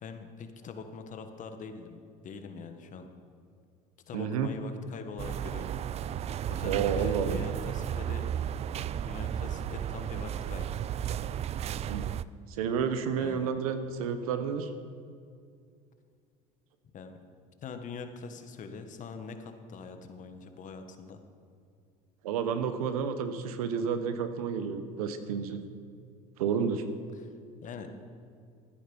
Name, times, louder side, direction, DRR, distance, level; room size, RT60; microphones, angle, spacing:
voice 1, 0.0-3.1 4.1-5.8 6.5-8.3 9.0-10.7 13.2-13.5 16.9-17.2 17.6-21.2 27.1-27.3 27.6-27.9, left 5 dB, 45° left, 7 dB, 1.5 m, -43 dB
voice 2, 4.1-4.5 6.6-7.4 11.9-12.0 12.5-14.7 22.2-25.6 26.4-26.8, right 7 dB, 90° right, 9 dB, 1.0 m, -30 dB
sound 1, 5.2-12.2, right 10 dB, 35° right, 0.4 m, -34 dB
14.5 x 10.0 x 5.5 m, 2.3 s
supercardioid pair, 90°, 18 cm